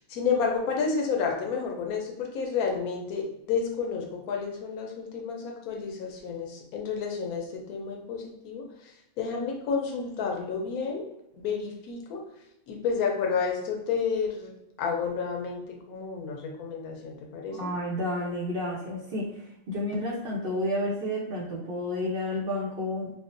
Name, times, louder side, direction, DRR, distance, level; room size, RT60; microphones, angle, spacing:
voice 1, 0.0-11.1 11.3-12.2 12.7-17.6, left 5 dB, 85° left, 2 dB, 1.1 m, -31 dB
voice 2, 17.5-19.3 19.7-23.1, left 1 dB, 55° right, -4 dB, 0.7 m, -30 dB
3.6 x 2.0 x 2.5 m, 0.84 s
omnidirectional pair, 1.5 m